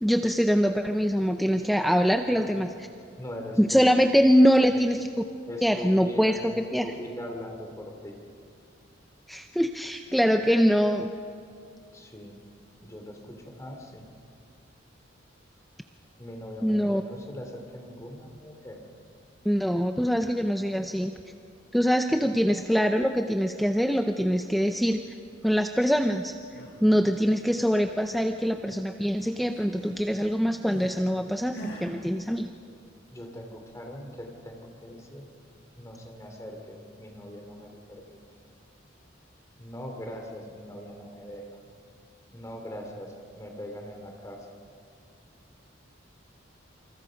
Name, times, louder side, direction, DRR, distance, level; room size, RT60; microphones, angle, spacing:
voice 1, 0.0-2.7 3.6-5.0 5.6-6.9 9.3-11.1 16.6-17.0 19.4-21.1 21.7-25.0 25.4-26.3 26.8-32.5, equal, ahead, 5 dB, 0.6 m, -23 dB
voice 2, 3.2-3.8 4.7-4.8 5.5-8.2 11.9-12.4 12.8-14.1 16.2-18.8 33.1-35.2 35.8-38.2 39.6-41.6 42.3-44.5, equal, 15° left, 3 dB, 3.1 m, -41 dB
sound 1, 26.3-26.8 27.2-28.6 28.9-31.0 31.5-31.9, right 1 dB, 65° left, 7.2 m, -44 dB
27.5 x 26.5 x 5.2 m, 2.4 s
head